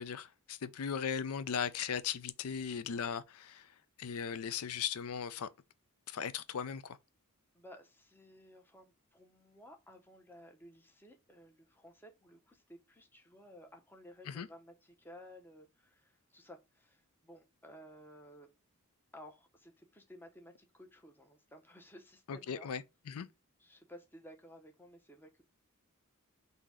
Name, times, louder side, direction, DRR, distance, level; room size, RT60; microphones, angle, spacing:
voice 1, 0.0-5.5 6.1-7.0 14.3-14.5 22.3-23.3, left 7 dB, 80° left, 0.5 m, -38 dB
voice 2, 7.5-18.5 19.1-22.7 23.6-25.4, equal, 10° left, 0.7 m, -56 dB
3.8 x 2.8 x 4.7 m
head